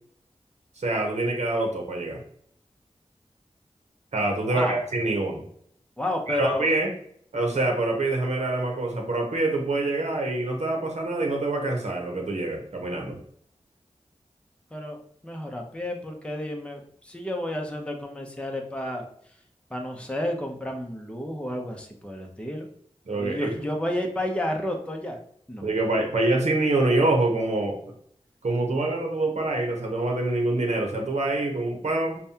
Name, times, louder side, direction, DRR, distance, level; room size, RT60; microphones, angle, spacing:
voice 1, 0.8-2.2 4.1-5.4 6.3-6.9 7.3-13.2 23.1-23.5 25.6-27.8 28.4-32.2, right 2 dB, 75° right, 1 dB, 0.8 m, -25 dB
voice 2, 4.5-4.8 6.0-6.7 14.7-15.0 15.2-19.1 19.7-22.7 23.2-25.2 25.5-25.7, left 1 dB, 10° left, 2 dB, 0.7 m, -31 dB
5.3 x 2.2 x 2.7 m, 0.66 s
wide cardioid pair, 55°, 12 cm